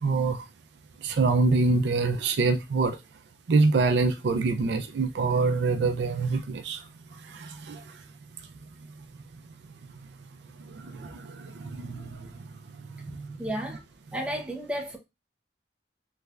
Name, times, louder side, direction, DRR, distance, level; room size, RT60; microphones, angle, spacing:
voice 1, 0.0-0.4 1.0-3.0 3.5-6.8 7.2-7.9 10.6-13.4, right 3 dB, 65° right, 0.4 m, -26 dB
voice 2, 13.4-13.8 14.1-15.0, equal, 5° right, 0.6 m, -32 dB
3.2 x 3.2 x 2.4 m
head